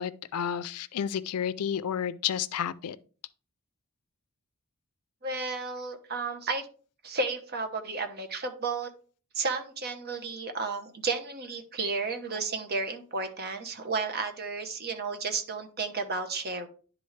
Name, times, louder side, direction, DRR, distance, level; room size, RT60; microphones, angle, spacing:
voice 1, 0.0-3.0, left 8 dB, 80° left, 0.4 m, -31 dB
voice 2, 5.2-6.7 7.0-8.9 9.3-16.7, right 4 dB, 45° right, 0.9 m, -32 dB
10.5 x 3.8 x 3.2 m
head